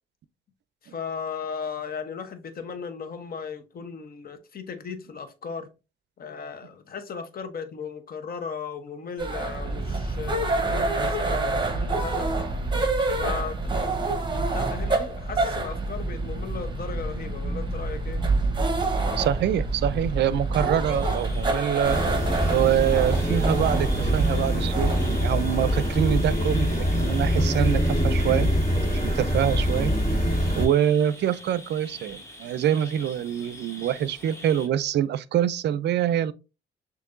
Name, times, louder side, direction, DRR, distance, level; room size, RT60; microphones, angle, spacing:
voice 1, 0.8-5.7 6.2-12.3 13.1-18.2, left 6 dB, 50° left, 0.9 m, -36 dB
sound 1, 9.2-25.2, right 3 dB, 25° right, 1.0 m, -27 dB
voice 2, 19.2-22.0 22.5-28.5 29.1-29.9 30.5-36.3, right 10 dB, 60° right, 0.4 m, -25 dB
sound 2, 20.9-34.7, left 1 dB, 15° left, 1.1 m, -44 dB
sound 3, 21.8-30.7, equal, 30° left, 2.0 m, -24 dB
6.4 x 2.7 x 2.5 m
cardioid pair, 90°, 20 cm